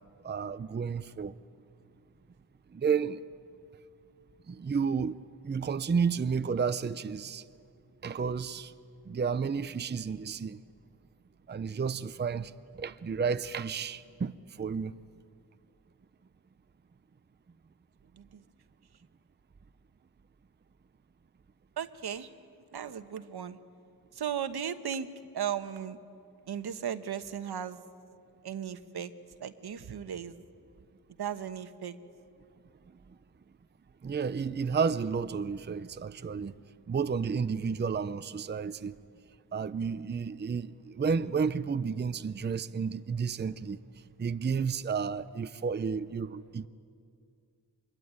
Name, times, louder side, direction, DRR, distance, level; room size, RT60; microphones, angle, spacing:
voice 1, 0.2-1.3 2.7-3.2 4.5-5.2 5.4-7.4 8.0-8.7 9.1-10.6 11.5-12.5 12.8-14.3 14.6-14.9 34.0-36.5 36.9-38.9 39.5-43.8 44.2-46.7, right 6 dB, 25° right, 12 dB, 0.6 m, -31 dB
voice 2, 21.8-22.3 22.7-23.6 24.1-25.1 25.3-26.0 26.5-27.8 28.4-29.1 29.4-30.3 31.2-32.0, right 8 dB, 80° right, 10 dB, 1.2 m, -36 dB
24.5 x 22.0 x 9.5 m, 2.4 s
wide cardioid pair, 90°, 38 cm